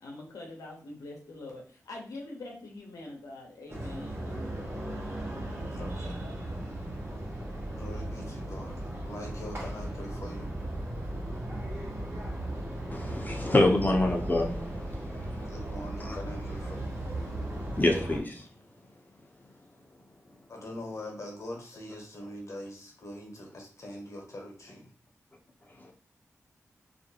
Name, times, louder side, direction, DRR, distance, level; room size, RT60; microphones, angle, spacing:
voice 1, 0.0-4.4, left 2 dB, 90° left, -1 dB, 0.7 m, -44 dB
sound 1, 3.7-18.2, right 1 dB, 45° right, 1.0 m, -36 dB
voice 2, 5.7-6.1 7.6-10.5 15.4-17.0 20.5-24.9, left 1 dB, 60° left, 0 dB, 0.9 m, -43 dB
voice 3, 12.9-15.6 16.0-16.2 17.6-18.5 19.4-19.5 25.8-25.9, left 1 dB, 30° left, 1 dB, 0.6 m, -27 dB
2.5 x 2.1 x 2.7 m, 0.41 s
cardioid pair, 40°, 6 cm